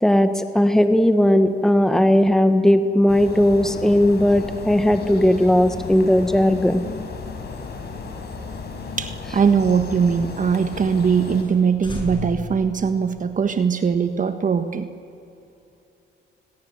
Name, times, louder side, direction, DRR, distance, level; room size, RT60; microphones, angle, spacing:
voice 1, 0.0-6.8, left 1 dB, ahead, 8 dB, 1.6 m, -17 dB
sound 1, 3.1-11.4, left 4 dB, 55° left, 5.1 m, -34 dB
sound 2, 7.5-10.3 10.6-10.7 11.1-11.2 11.4-11.6 11.8-13.5, left 3 dB, 25° left, 7.4 m, -36 dB
voice 2, 9.0-14.9, right 6 dB, 40° right, 8 dB, 1.5 m, -21 dB
30.0 x 21.0 x 8.0 m, 2.7 s
cardioid pair, 90°, 20 cm